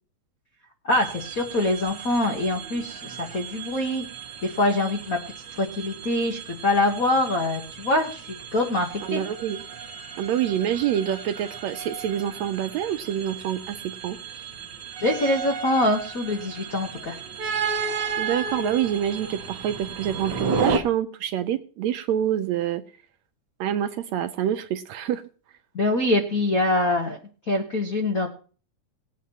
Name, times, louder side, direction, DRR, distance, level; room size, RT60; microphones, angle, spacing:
voice 1, 0.8-4.0 4.4-5.2 5.6-9.2 15.0-17.2 25.7-27.2 27.5-28.3, left 1 dB, 60° left, 2 dB, 0.9 m, -24 dB
sound 1, 0.9-20.8, right 5 dB, 60° right, 1.2 m, -34 dB
voice 2, 9.1-9.6 10.2-14.2 18.2-22.8 23.6-25.2, right 10 dB, 75° right, 9 dB, 1.7 m, -26 dB
20.5 x 8.3 x 2.9 m, 0.39 s
omnidirectional pair, 3.5 m